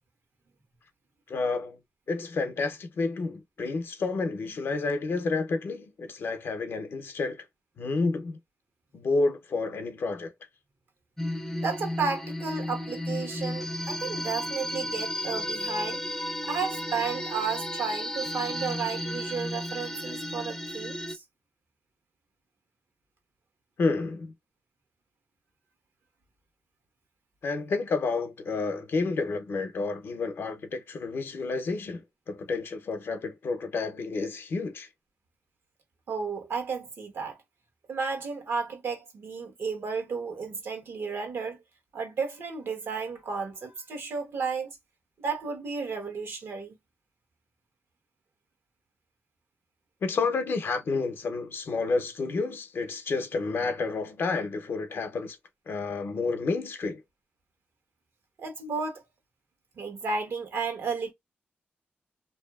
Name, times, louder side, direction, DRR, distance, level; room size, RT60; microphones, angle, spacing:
voice 1, 1.3-1.8 2.1-7.4 7.8-8.4 8.9-10.3 23.8-24.3 27.4-34.9 50.0-55.4 55.7-57.0, left 3 dB, 65° left, 0.6 m, -30 dB
sound 1, 11.2-21.1, left 1 dB, 10° left, 0.5 m, -33 dB
voice 2, 11.6-16.0 16.4-21.2 36.1-37.4 37.9-41.6 41.9-44.8 45.2-46.7 58.4-59.0 59.8-61.1, right 5 dB, 75° right, 1.1 m, -33 dB
2.6 x 2.6 x 2.3 m
wide cardioid pair, 95°, 4 cm